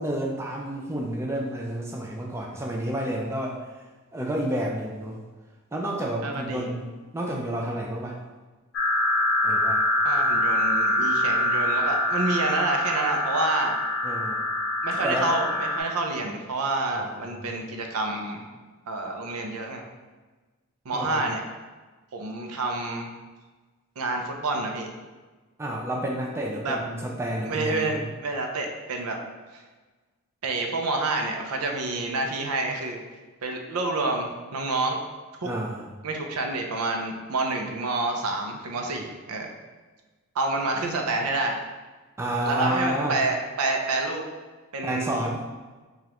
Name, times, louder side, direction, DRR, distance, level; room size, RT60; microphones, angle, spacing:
voice 1, 0.0-3.6 4.1-5.2 5.7-8.2 9.4-9.8 14.0-14.5 14.9-15.3 17.0-17.6 20.9-21.2 25.6-28.0 35.4-35.9 42.2-43.2 44.8-45.4, right 1 dB, 10° right, -1 dB, 0.3 m, -30 dB
voice 2, 6.2-6.7 10.0-13.8 14.8-18.4 18.9-19.8 20.9-21.4 22.1-23.1 24.0-24.9 26.6-26.8 27.5-29.2 29.5-29.6 30.4-33.0 33.4-35.0 35.4-35.5 36.0-39.5 40.3-41.6 42.4-44.2 44.7-45.2, right 2 dB, 80° right, 3 dB, 0.5 m, -28 dB
sound 1, 8.7-15.8, left 1 dB, 50° left, 0.8 m, -25 dB
5.0 x 2.4 x 2.9 m, 1.3 s
head